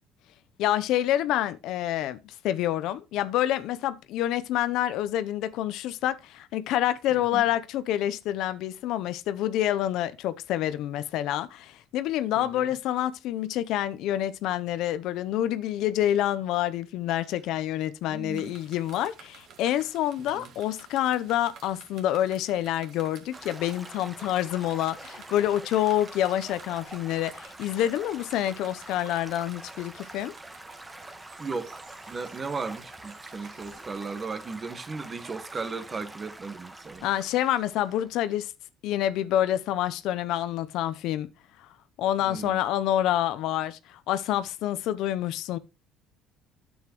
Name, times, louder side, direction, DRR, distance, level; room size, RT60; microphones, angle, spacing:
voice 1, 0.6-30.3 37.0-38.5 38.8-41.3 42.0-45.6, left 12 dB, 75° left, 0.7 m, -27 dB
voice 2, 7.1-7.4 12.4-12.7 18.1-18.5 20.3-20.5 31.4-31.8 32.1-37.1 42.2-42.6, right 4 dB, 30° right, 1.5 m, -36 dB
sound 1, 18.3-34.1, right 7 dB, 65° right, 2.2 m, -53 dB
Stream / Gurgling / Trickle dribble, 23.3-38.4, right 1 dB, 10° right, 1.3 m, -45 dB
9.7 x 8.1 x 3.0 m
supercardioid pair, 85°, 0 cm